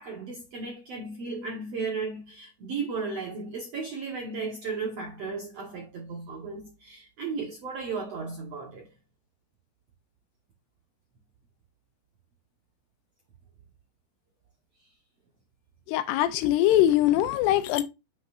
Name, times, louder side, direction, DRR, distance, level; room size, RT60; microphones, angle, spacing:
voice 1, 0.0-8.9 14.8-14.9, right 4 dB, 70° right, 1.5 m, -35 dB
voice 2, 15.9-17.8, left 13 dB, 85° left, 2.8 m, -22 dB
8.0 x 6.1 x 2.5 m
omnidirectional pair, 4.8 m